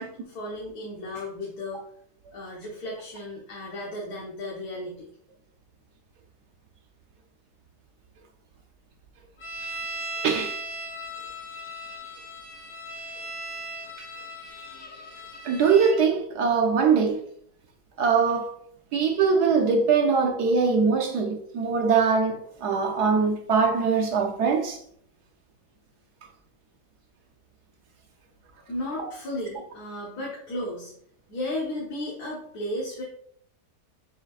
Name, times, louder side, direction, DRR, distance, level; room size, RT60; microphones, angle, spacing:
voice 1, 0.0-1.8 2.3-5.1 28.7-30.9 31.3-33.0, left 1 dB, 70° left, 1.8 m, -34 dB
sound 1, 9.4-16.0, right 1 dB, 90° left, 1.9 m, -37 dB
voice 2, 10.2-10.6 15.4-17.2 18.0-18.5 18.9-24.8 29.0-29.1, right 5 dB, 70° right, 1.3 m, -22 dB
6.9 x 6.1 x 2.5 m
omnidirectional pair, 1.8 m